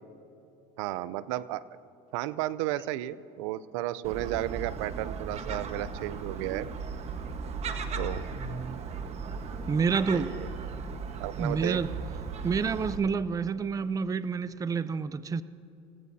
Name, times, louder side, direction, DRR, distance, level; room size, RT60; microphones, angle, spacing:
voice 1, 0.8-1.6 2.1-6.7 8.0-8.2 10.1-10.5 11.2-11.8, right 15 dB, 85° right, 18 dB, 0.5 m, -33 dB
Gull seagull, 4.0-13.0, right 5 dB, 45° right, 1.3 m, -37 dB
voice 2, 8.4-8.8 9.7-10.3 11.4-11.9 12.4-15.4, right 5 dB, 20° right, 15 dB, 0.5 m, -29 dB
27.5 x 17.0 x 2.8 m, 2.9 s
supercardioid pair, 100°, 16 cm